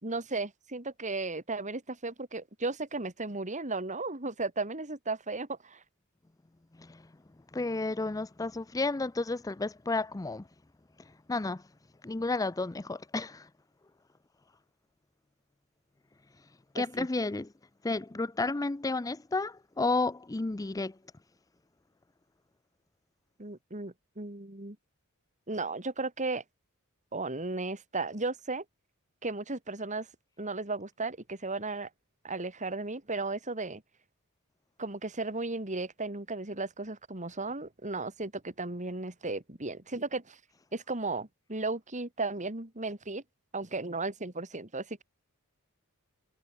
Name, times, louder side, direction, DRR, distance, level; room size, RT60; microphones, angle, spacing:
voice 1, 0.0-5.8 16.8-17.1 23.4-24.8 25.5-26.4 27.1-28.6 29.2-30.1 30.4-31.9 32.2-33.8 34.8-40.4 40.7-43.2 43.5-45.0, right 3 dB, 35° right, 3.2 m, -35 dB
voice 2, 7.5-10.4 11.3-11.6 12.0-13.5 16.7-17.5 17.8-20.9, left 3 dB, 15° left, 0.5 m, -32 dB
head